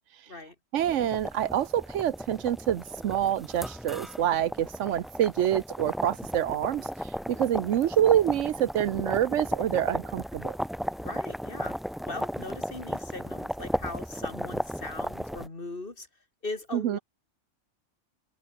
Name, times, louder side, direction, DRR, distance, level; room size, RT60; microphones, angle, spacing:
voice 1, 0.7-6.9 7.3-10.6 16.7-17.0, right 11 dB, 75° right, 1.0 m, -26 dB
sound 1, 0.8-15.5, equal, ahead, 1.1 m, -35 dB
voice 2, 11.0-11.8 12.1-16.1 16.4-17.0, left 2 dB, 45° left, 3.0 m, -39 dB
omnidirectional pair, 1.3 m